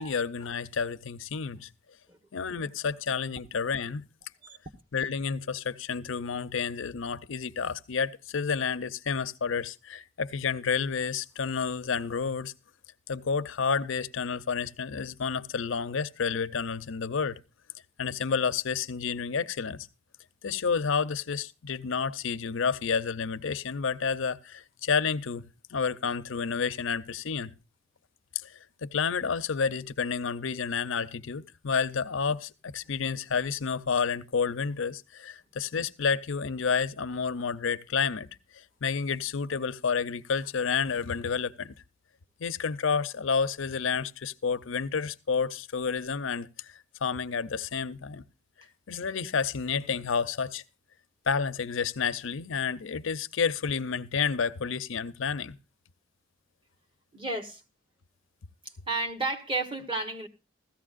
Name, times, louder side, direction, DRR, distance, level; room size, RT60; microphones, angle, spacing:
voice 1, 0.0-1.7 2.3-4.0 4.9-12.5 13.1-17.4 18.0-19.8 20.4-25.4 25.7-27.6 28.4-41.7 42.4-48.2 48.9-50.6 51.3-55.6, left 5 dB, 70° left, 0.6 m, -30 dB
voice 2, 57.1-57.6 58.6-60.3, right 2 dB, 25° right, 1.2 m, -33 dB
16.5 x 14.0 x 2.5 m
head